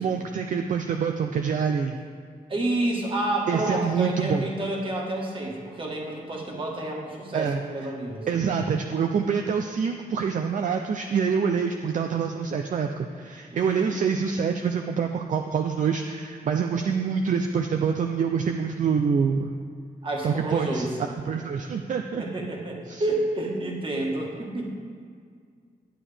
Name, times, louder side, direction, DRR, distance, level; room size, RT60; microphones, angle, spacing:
voice 1, 0.0-2.0 3.5-4.5 7.3-7.9 8.3-19.5 20.2-20.9 21.3-22.2 22.9-23.0, right 6 dB, 55° right, 4 dB, 0.4 m, -26 dB
voice 2, 2.5-8.3 13.5-13.9 20.0-21.0 22.2-24.7, right 2 dB, 35° right, -1 dB, 1.5 m, -29 dB
11.0 x 9.0 x 3.4 m, 2.1 s
wide cardioid pair, 170°, 15 cm